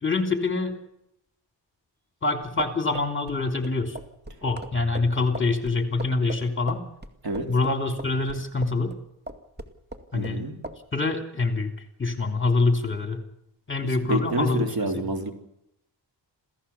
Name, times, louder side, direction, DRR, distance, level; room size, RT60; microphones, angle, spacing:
voice 1, 0.0-0.8 2.2-4.0 4.4-6.8 7.5-8.9 10.1-10.4 10.9-11.7 12.0-13.2 13.7-14.7, left 3 dB, 25° left, 6 dB, 3.1 m, -25 dB
sound 1, 2.4-9.0 9.3-10.4 10.6-10.8, right 2 dB, 25° right, 2.1 m, -39 dB
voice 2, 10.1-10.6 14.0-15.3, right 2 dB, 55° right, 4 dB, 3.6 m, -28 dB
27.5 x 16.5 x 7.2 m, 0.80 s
wide cardioid pair, 135°, 44 cm